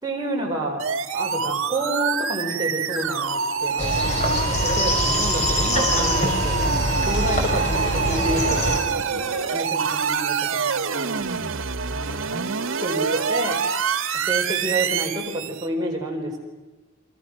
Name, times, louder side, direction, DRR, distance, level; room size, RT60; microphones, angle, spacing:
voice 1, 0.0-0.8 1.1-6.7 7.0-9.1 9.5-11.2 11.8-12.5 12.8-13.6 14.1-16.4, right 1 dB, 20° right, -1 dB, 4.7 m, -29 dB
sound 1, 0.8-15.7, right 5 dB, 85° right, 1.3 m, -26 dB
sound 2, 3.8-8.8, equal, 35° left, 5.8 m, -24 dB
28.5 x 26.0 x 6.4 m, 1.2 s
head